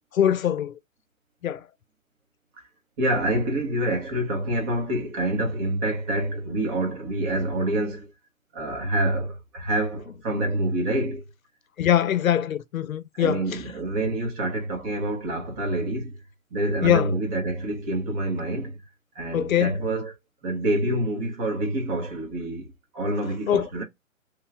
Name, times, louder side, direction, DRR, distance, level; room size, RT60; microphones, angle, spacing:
voice 1, 0.1-0.7 1.4-1.6 11.8-13.4 16.8-17.1 19.3-19.8 23.5-23.7, left 10 dB, 75° left, 0.7 m, -22 dB
voice 2, 3.0-8.1 8.5-11.2 13.2-16.2 16.5-18.8 19.1-20.1 20.4-23.8, right 1 dB, 30° right, 1.4 m, -27 dB
3.2 x 2.7 x 3.7 m
hypercardioid pair, 140°, 41 cm